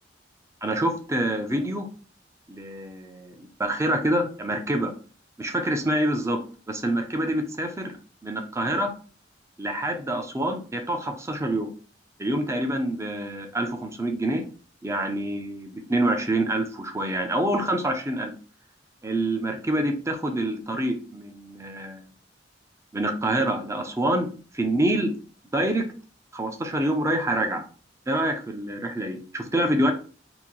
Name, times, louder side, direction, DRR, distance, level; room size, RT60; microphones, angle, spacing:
voice 1, 0.6-1.9 2.5-4.9 5.4-6.4 6.7-7.9 8.2-8.9 9.6-11.7 12.2-14.4 14.8-18.3 19.0-22.0 22.9-24.3 24.5-25.1 25.5-25.8 26.3-27.6 28.1-29.9, right 1 dB, 15° right, 4 dB, 0.5 m, -26 dB
2.9 x 2.6 x 3.8 m, 0.38 s
head